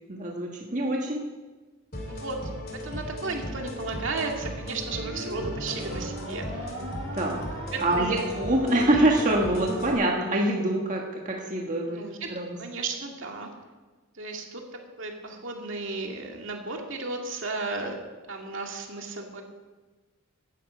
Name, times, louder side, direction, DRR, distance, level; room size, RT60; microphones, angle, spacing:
voice 1, 0.1-1.3 7.1-12.0 12.3-12.6, right 1 dB, 35° right, -1 dB, 1.5 m, -25 dB
sound 1, 1.9-9.9, equal, 45° left, 2.8 m, -37 dB
voice 2, 2.1-2.5 2.8-6.8 7.7-8.3 11.8-13.5 14.2-14.6 15.0-18.0 18.3-19.4, right 3 dB, 65° right, 1 dB, 2.3 m, -34 dB
sound 2, 4.9-11.4, equal, 80° right, 4.3 m, -40 dB
17.0 x 12.0 x 5.2 m, 1.3 s
head